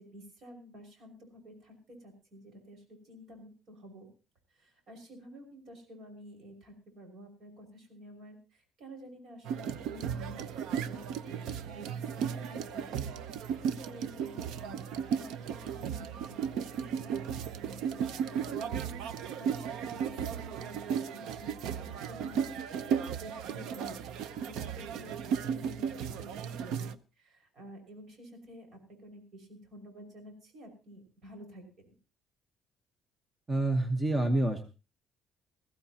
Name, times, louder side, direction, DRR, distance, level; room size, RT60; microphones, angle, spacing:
voice 1, 0.0-4.1 4.5-19.0 19.4-31.9, equal, 55° right, 4 dB, 5.7 m, -51 dB
sound 1, 9.4-26.9, right 7 dB, 85° right, 0.7 m, -35 dB
voice 2, 33.5-34.6, right 2 dB, 15° right, 6 dB, 1.2 m, -27 dB
21.0 x 15.0 x 2.9 m, 0.34 s
cardioid pair, 135°, 0 cm